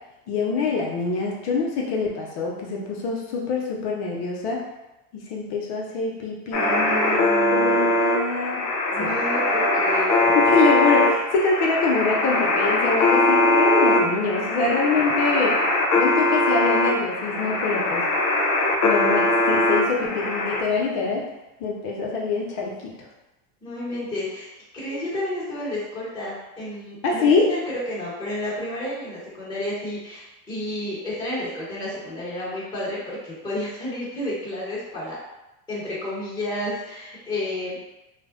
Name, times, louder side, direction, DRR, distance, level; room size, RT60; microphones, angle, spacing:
voice 1, 0.3-4.6 5.1-7.2 7.5-8.6 9.0-9.1 10.3-15.6 15.9-18.1 18.8-21.2 21.6-23.1 27.0-27.5, left 4 dB, 55° left, -2 dB, 0.8 m, -25 dB
sound 1, 6.5-20.6, left 2 dB, 40° left, 0.5 m, -21 dB
voice 2, 6.5-7.9 8.9-10.3 23.6-24.5 24.7-27.6 27.9-35.2 35.7-37.8, left 1 dB, 10° left, -10 dB, 1.1 m, -31 dB
2.5 x 2.0 x 3.6 m, 0.97 s
supercardioid pair, 125°, 48 cm